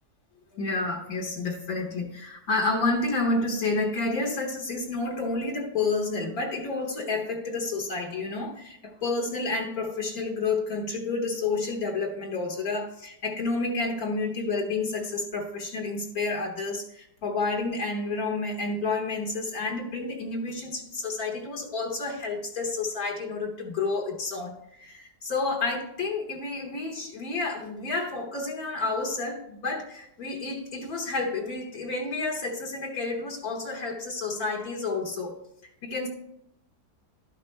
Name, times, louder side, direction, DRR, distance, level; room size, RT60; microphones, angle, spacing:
voice 1, 0.5-35.4 35.8-36.1, left 3 dB, 65° left, 1 dB, 1.4 m, -30 dB
12.5 x 5.4 x 3.1 m, 0.77 s
omnidirectional pair, 1.8 m